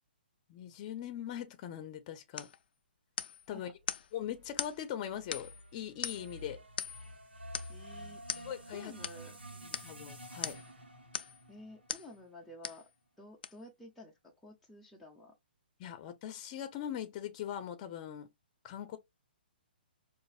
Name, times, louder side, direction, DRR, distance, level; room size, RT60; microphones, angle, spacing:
voice 1, 0.5-2.5 3.5-3.7 4.1-6.6 8.4-8.9 9.6-10.6 15.8-18.3 18.6-19.0, left 10 dB, 35° left, 0.7 m, -41 dB
sound 1, 2.4-2.6 3.2-3.5 3.9-4.1 4.6-4.8 5.3-5.6 6.0-6.4 6.8-7.1 7.5-7.8 8.3-8.5 9.0-9.2 9.7-9.9 10.4-10.7 11.1-11.4 11.9-12.1 12.6-12.9 13.4-13.5, left 8 dB, 65° left, 0.4 m, -39 dB
sound 2, 4.2-12.6, equal, 90° right, 1.2 m, -50 dB
voice 2, 7.7-8.2 8.7-9.4 11.5-12.8 13.2-15.3, left 1 dB, ahead, 0.7 m, -52 dB
5.2 x 2.5 x 2.3 m
hypercardioid pair, 145°, 6 cm